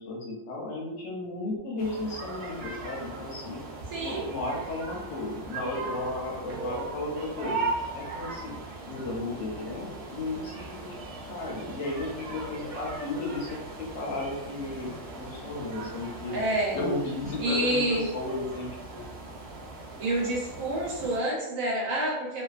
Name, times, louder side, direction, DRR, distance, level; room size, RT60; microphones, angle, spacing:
voice 1, 0.0-3.6 4.0-7.6 7.9-8.6 8.9-10.7 11.3-16.4 16.7-19.0, left 2 dB, 65° left, -2 dB, 0.8 m, -34 dB
sound 1, 1.8-21.2, right 3 dB, 60° right, 0.7 m, -39 dB
voice 2, 3.9-4.3 16.3-16.8 17.4-18.1 20.0-22.4, right 1 dB, 80° right, -3 dB, 1.1 m, -28 dB
2.5 x 2.2 x 2.3 m, 0.98 s
omnidirectional pair, 1.4 m